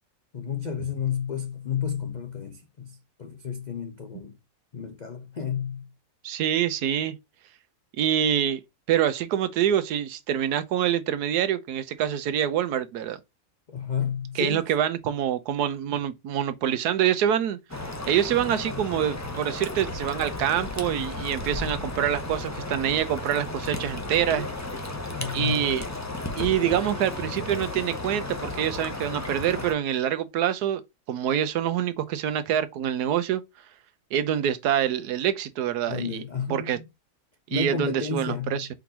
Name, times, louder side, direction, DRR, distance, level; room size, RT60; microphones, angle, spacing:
voice 1, 0.3-4.4 4.7-5.9 13.7-14.6 25.2-25.8 35.9-36.9 37.5-38.7, left 7 dB, 80° left, 0.4 m, -31 dB
voice 2, 6.2-7.1 8.0-8.6 8.9-13.2 14.4-17.6 18.1-24.5 25.3-25.8 26.3-30.8 31.1-33.4 34.1-36.2 36.5-36.8 37.5-38.7, right 10 dB, 85° right, 1.2 m, -26 dB
sound 1, 17.7-29.7, left 2 dB, 15° left, 0.7 m, -34 dB
4.7 x 3.8 x 2.8 m
omnidirectional pair, 1.7 m